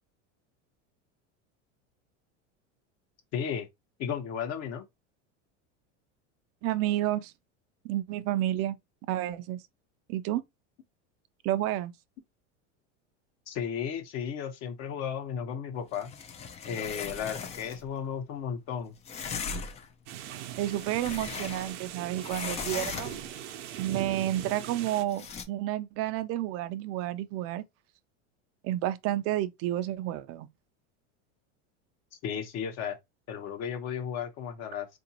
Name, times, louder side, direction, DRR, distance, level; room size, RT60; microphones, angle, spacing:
voice 1, 3.3-3.7 4.0-4.8 13.5-16.1 16.6-18.9 32.2-33.0 33.3-34.9, left 7 dB, 45° left, 1.0 m, -34 dB
voice 2, 6.6-7.3 7.8-8.8 9.1-9.6 10.1-10.4 11.4-11.9 20.6-23.1 23.8-27.6 28.6-30.5, right 14 dB, 45° right, 0.4 m, -30 dB
sound 1, 15.9-17.9 19.0-19.9 20.5-21.9 22.2-23.4 25.1-25.4, left 5 dB, 20° left, 0.3 m, -38 dB
sound 2, 20.1-25.0, right 11 dB, 85° right, 0.7 m, -40 dB
3.7 x 2.6 x 2.8 m
supercardioid pair, 135°, 35 cm